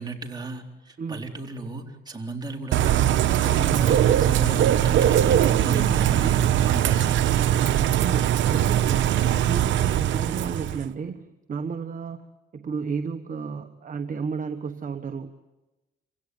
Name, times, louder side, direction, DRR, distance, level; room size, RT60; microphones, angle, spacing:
voice 1, 0.0-7.4, right 2 dB, 20° right, 1 dB, 3.9 m, -35 dB
voice 2, 1.0-1.3 5.2-6.5 8.0-15.3, right 5 dB, 40° right, 7 dB, 1.3 m, -33 dB
Bird / Rain, 2.7-10.9, right 11 dB, 75° right, 1.0 m, -21 dB
27.0 x 16.5 x 9.6 m, 1.1 s
cardioid pair, 90°, 20 cm